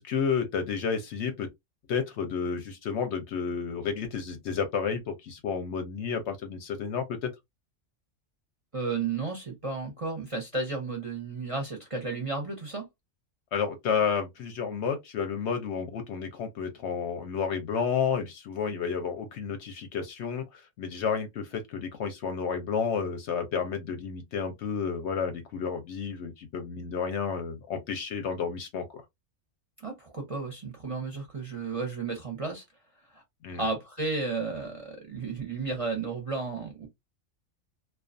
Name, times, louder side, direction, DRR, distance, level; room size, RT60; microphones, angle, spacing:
voice 1, 0.0-1.5 1.9-7.3 13.5-29.0 33.4-33.6, left 6 dB, 65° left, 0.8 m, -31 dB
voice 2, 8.7-12.9 29.8-32.6 33.1-33.2 33.6-36.9, right 4 dB, 35° right, 0.6 m, -33 dB
2.3 x 2.3 x 2.4 m
omnidirectional pair, 1.4 m